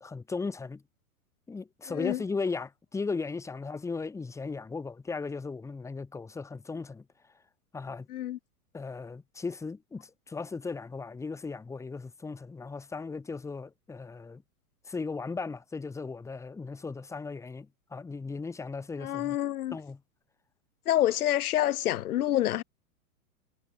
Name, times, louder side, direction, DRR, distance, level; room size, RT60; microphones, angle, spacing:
voice 1, 0.0-0.8 1.5-7.0 7.7-8.1 8.7-14.4 14.9-17.7 17.9-19.4 19.7-20.0, left 4 dB, 5° left, 1.6 m, -36 dB
voice 2, 1.9-2.2 8.1-8.4 19.0-19.8 20.9-22.6, left 13 dB, 75° left, 1.0 m, -27 dB
hypercardioid pair, 145°, 44 cm